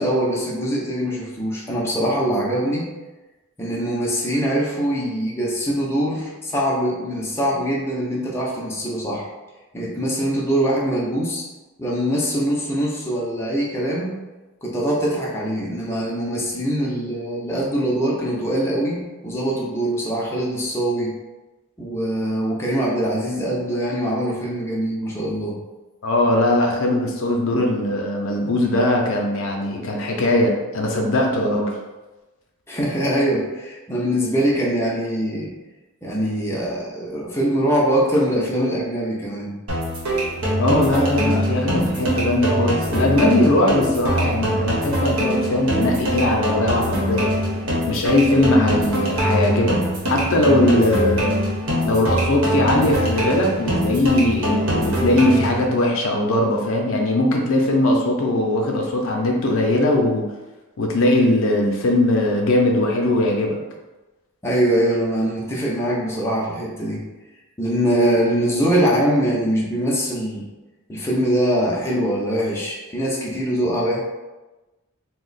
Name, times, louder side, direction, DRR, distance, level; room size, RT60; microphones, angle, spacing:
voice 1, 0.0-2.9 3.6-9.3 9.7-11.4 11.8-14.1 14.6-21.1 21.8-25.6 32.7-35.5 36.0-39.6 64.4-67.0 67.6-70.5 70.9-74.0, right 1 dB, 10° left, -4 dB, 0.5 m, -23 dB
voice 2, 26.0-31.7 40.6-47.3 47.9-49.8 50.1-51.3 51.8-60.3 60.8-63.6, left 1 dB, 60° left, 0 dB, 0.5 m, -20 dB
sound 1, 39.7-55.7, equal, 75° right, 1.0 m, -23 dB
2.9 x 2.1 x 3.9 m, 1.1 s
head